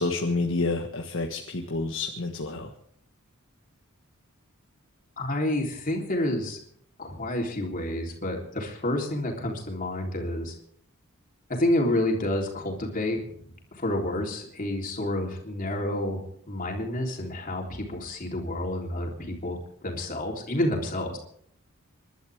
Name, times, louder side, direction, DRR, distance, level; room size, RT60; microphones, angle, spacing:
voice 1, 0.0-2.7, left 3 dB, 65° left, 1 dB, 1.5 m, -29 dB
voice 2, 5.2-6.6 7.0-10.6 11.5-21.2, left 1 dB, 40° left, 0 dB, 3.6 m, -29 dB
27.5 x 12.0 x 3.6 m, 0.66 s
head